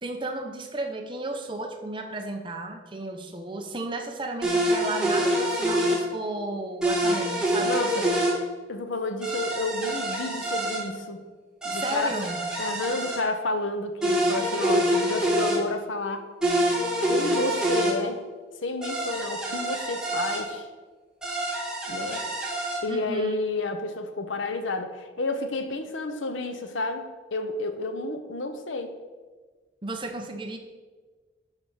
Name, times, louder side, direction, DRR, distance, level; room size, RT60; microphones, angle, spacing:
voice 1, 0.0-8.1 11.7-12.4 22.9-23.3 29.8-30.6, right 2 dB, 25° right, 4 dB, 0.9 m, -33 dB
sound 1, 4.4-6.0 6.8-8.4 9.2-10.8 11.6-13.2 14.0-15.6 16.4-17.9 18.8-20.4 21.2-22.8, right 1 dB, 5° right, 1.6 m, -26 dB
voice 2, 7.6-8.0 8.7-11.2 11.6-12.2 12.6-16.3 17.1-18.2 18.6-20.7 21.9-22.2 22.8-28.9, left 2 dB, 85° left, 8 dB, 0.9 m, -30 dB
11.0 x 4.8 x 5.6 m, 1.4 s
head